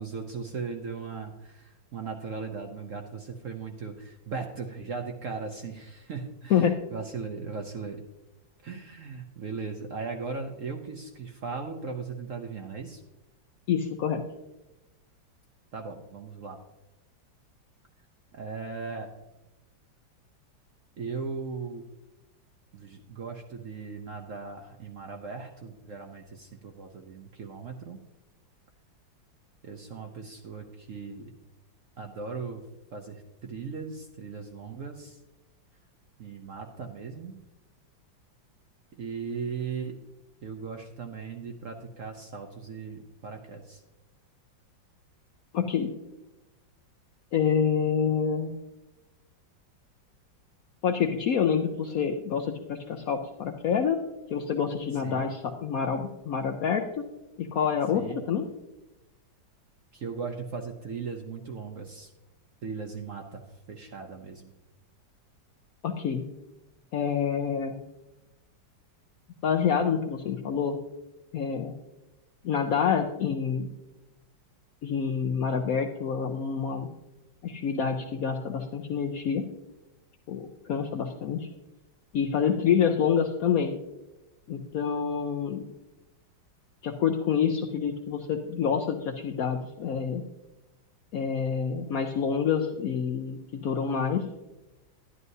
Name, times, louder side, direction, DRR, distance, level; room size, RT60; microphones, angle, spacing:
voice 1, 0.0-8.0 8.6-13.0 15.7-16.6 18.3-19.1 21.0-21.8 22.7-28.0 29.6-31.3 32.0-32.6 32.9-35.2 36.2-37.4 39.0-40.0 40.4-43.8 55.0-55.3 57.9-58.2 59.9-62.1 62.6-63.4 63.7-64.5, right 5 dB, 60° right, 3 dB, 0.9 m, -38 dB
voice 2, 13.7-14.2 45.5-45.9 47.3-48.5 50.8-54.0 54.3-57.0 57.4-58.5 65.8-66.3 66.9-67.7 69.4-70.8 71.3-71.7 72.4-73.7 74.8-76.9 77.4-79.5 80.3-81.5 82.1-83.8 84.5-85.6 86.8-90.2 91.1-94.3, left 7 dB, 70° left, 3 dB, 0.8 m, -27 dB
11.0 x 11.0 x 2.7 m, 0.99 s
omnidirectional pair, 2.0 m